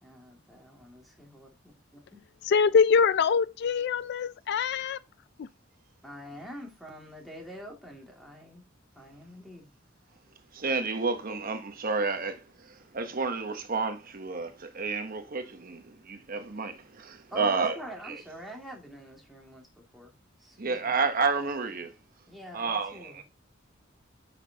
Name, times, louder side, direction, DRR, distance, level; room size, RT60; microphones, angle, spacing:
voice 1, 0.0-1.5 1.9-2.2 6.0-8.6 8.9-9.7 17.3-19.7 19.9-20.1 20.4-20.9 22.3-23.2, equal, ahead, 2.2 m, -45 dB
voice 2, 2.4-5.0 5.4-5.5, left 6 dB, 55° left, 0.4 m, -24 dB
voice 3, 10.5-17.8 18.0-18.2 20.6-21.9 22.5-23.2, right 4 dB, 45° right, 0.9 m, -30 dB
9.7 x 5.9 x 2.8 m
head